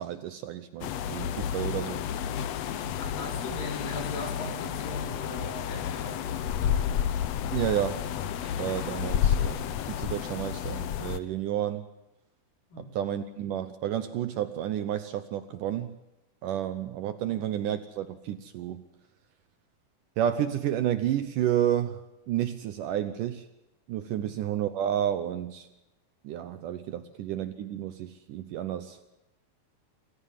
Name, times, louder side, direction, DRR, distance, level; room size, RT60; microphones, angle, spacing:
voice 1, 0.0-2.0 7.5-8.1 8.4-9.7 10.0-11.8 13.0-16.0 16.4-18.8 20.2-22.0 22.3-23.5 23.9-25.7 26.2-29.0, right 11 dB, 70° right, 11 dB, 2.1 m, -31 dB
sound 1, 0.8-11.2, left 9 dB, 85° left, 1.4 m, -31 dB
voice 2, 2.8-6.8 12.7-12.9 17.3-17.4 24.2-24.3, left 2 dB, 60° left, 2 dB, 6.2 m, -40 dB
26.5 x 15.0 x 7.4 m, 0.98 s
omnidirectional pair, 4.4 m